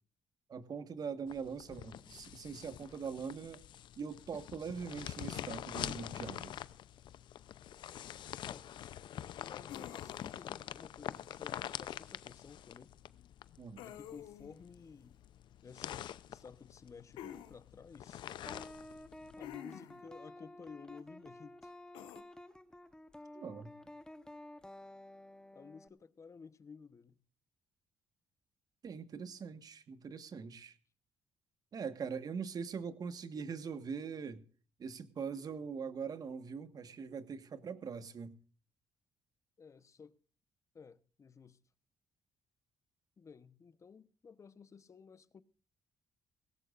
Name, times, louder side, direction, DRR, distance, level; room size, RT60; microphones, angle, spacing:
voice 1, 0.5-3.6 4.0-6.5 13.6-13.8 17.2-17.3 23.3-23.7 28.8-30.7 31.7-34.4 34.8-38.3, right 6 dB, 50° right, 1.5 m, -42 dB
sound 1, 1.3-19.6, left 11 dB, 70° left, 0.6 m, -46 dB
voice 2, 9.1-12.9 13.8-15.2 15.6-18.2 19.4-21.7 25.5-27.2 39.6-40.2 40.7-41.6 43.2-45.4, left 5 dB, 40° left, 1.0 m, -54 dB
sound 2, 9.7-10.5 13.8-14.6 17.2-17.5 19.4-20.1 21.9-22.2, left 11 dB, 90° left, 1.4 m, -48 dB
sound 3, 18.5-25.9, left 1 dB, 10° left, 1.1 m, -52 dB
18.5 x 17.0 x 2.6 m
cardioid pair, 80°, 8 cm